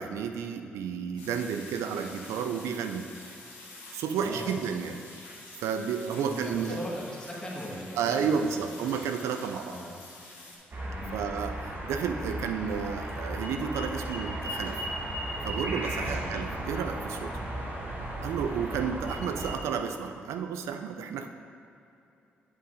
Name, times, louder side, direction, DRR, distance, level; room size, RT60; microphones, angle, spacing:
voice 1, 0.0-3.1 3.9-5.0 5.6-6.8 8.0-9.8 11.1-14.8 15.4-17.3 18.2-21.3, right 7 dB, 70° right, 7 dB, 0.4 m, -32 dB
sound 1, 1.2-10.6, left 2 dB, 90° left, 1.4 m, -48 dB
voice 2, 4.1-4.6 6.2-8.8 9.7-9.9 10.8-11.2 16.0-16.3, left 1 dB, 15° left, -4 dB, 1.6 m, -39 dB
sound 2, 10.7-19.5, right 1 dB, 40° right, 1.3 m, -35 dB
9.6 x 5.6 x 2.7 m, 2.7 s
hypercardioid pair, 45°, 5 cm